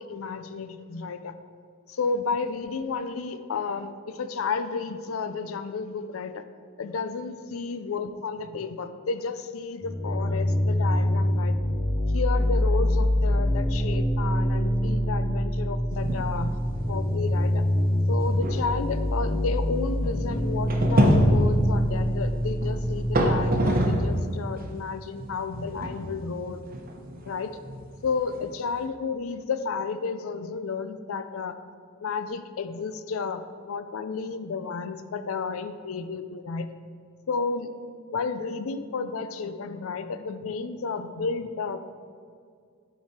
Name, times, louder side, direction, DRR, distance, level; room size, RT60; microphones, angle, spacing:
voice 1, 0.0-1.3 1.9-6.4 6.8-11.5 12.1-16.6 16.9-17.6 18.1-26.6 27.2-27.6 28.0-31.6 32.0-36.7 37.3-37.7 38.1-41.8, left 4 dB, 75° left, 11 dB, 0.5 m, -32 dB
sound 1, 9.8-23.5, equal, 20° left, 0.6 m, -25 dB
sound 2, 15.9-16.4 16.8-16.9 17.5-17.6 18.1-24.2 24.5-28.8, equal, 45° right, 0.9 m, -27 dB
11.5 x 5.0 x 4.3 m, 2.2 s
head